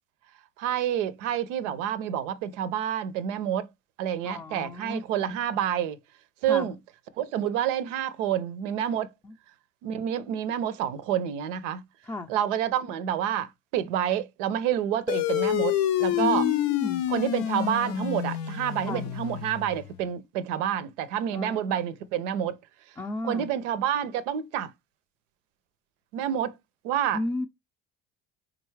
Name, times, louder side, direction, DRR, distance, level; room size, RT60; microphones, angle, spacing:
voice 1, 0.6-3.7 4.0-6.0 6.4-6.8 7.2-9.1 9.8-11.8 12.3-16.4 17.1-22.6 23.2-24.7 26.1-26.5 26.8-27.2, right 10 dB, 80° right, 0.5 m, -28 dB
voice 2, 4.2-5.4 6.5-6.7 9.2-9.3 12.1-12.3 16.1-17.1 18.8-19.1 21.3-21.6 23.0-23.5 27.1-27.5, left 2 dB, 10° left, 0.4 m, -33 dB
sound 1, 15.1-19.9, left 13 dB, 70° left, 0.5 m, -28 dB
3.8 x 2.3 x 3.1 m
hypercardioid pair, 70°, 36 cm